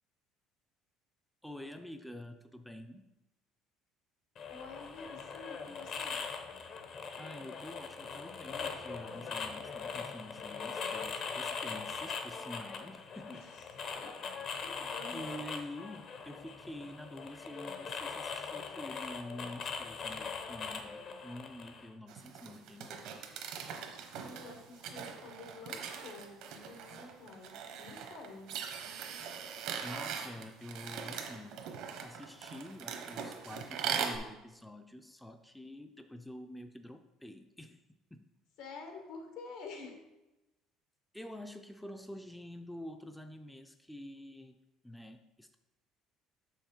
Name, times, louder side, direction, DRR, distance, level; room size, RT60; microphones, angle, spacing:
voice 1, 1.4-3.1 7.2-13.4 15.1-23.1 29.8-31.7 32.0-37.8 38.1-38.3 41.1-45.6, left 1 dB, 5° left, 6 dB, 0.4 m, -47 dB
sound 1, 4.4-21.9, left 5 dB, 50° left, 0.8 m, -41 dB
voice 2, 4.5-6.2 13.2-13.3 13.9-14.1 14.6-15.4 24.2-28.6 38.6-40.0, left 3 dB, 80° left, 3 dB, 1.6 m, -49 dB
sound 2, 22.1-34.2, right 7 dB, 70° right, 1.0 m, -41 dB
6.5 x 5.7 x 4.4 m, 1.0 s
cardioid pair, 125°, 0 cm